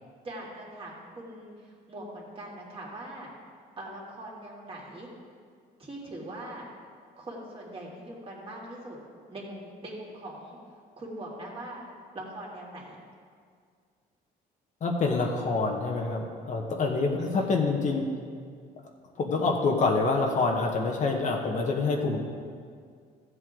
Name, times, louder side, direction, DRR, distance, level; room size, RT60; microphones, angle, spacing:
voice 1, 0.2-3.3 3.8-5.1 5.8-6.7 7.2-9.0 9.3-10.6 11.0-11.8 12.1-13.0 17.2-17.6, right 1 dB, 35° right, -3 dB, 2.6 m, -41 dB
voice 2, 14.8-18.1 19.2-22.2, left 3 dB, 50° left, 0 dB, 1.2 m, -26 dB
14.5 x 7.9 x 3.8 m, 2.1 s
cardioid pair, 110°, 17 cm